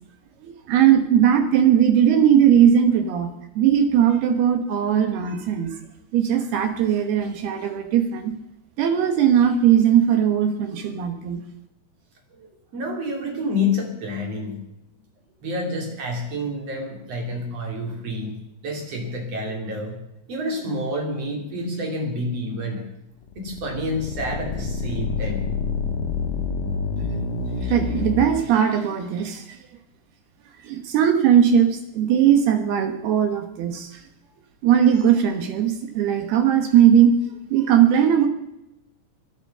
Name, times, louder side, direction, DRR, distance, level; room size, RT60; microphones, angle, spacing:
voice 1, 0.4-3.3 3.6-5.8 6.1-8.3 8.8-11.4 27.6-29.6 30.6-33.9 34.6-37.2 37.5-38.3, right 9 dB, 70° right, 7 dB, 2.6 m, -19 dB
voice 2, 12.7-14.6 15.4-20.0 20.3-22.8 23.3-25.4, left 1 dB, 35° right, 2 dB, 3.3 m, -28 dB
sound 1, 23.2-28.3, left 4 dB, 75° left, 1.9 m, -27 dB
24.0 x 9.0 x 5.5 m, 0.85 s
omnidirectional pair, 5.9 m